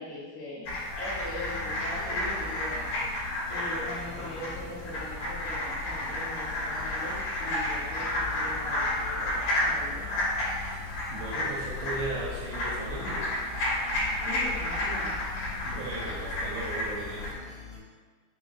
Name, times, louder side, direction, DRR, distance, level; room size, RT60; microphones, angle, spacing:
voice 1, 0.0-2.8 3.5-10.0 14.3-15.1, left 1 dB, 75° left, -8 dB, 2.7 m, -41 dB
sound 1, 0.7-17.3, left 1 dB, 60° left, 2.2 m, -31 dB
sound 2, 1.1-17.8, left 5 dB, 90° left, 3.4 m, -46 dB
voice 2, 11.1-13.3 15.6-17.3, right 2 dB, 85° right, -4 dB, 2.5 m, -37 dB
6.9 x 2.9 x 2.4 m, 1.5 s
omnidirectional pair, 5.4 m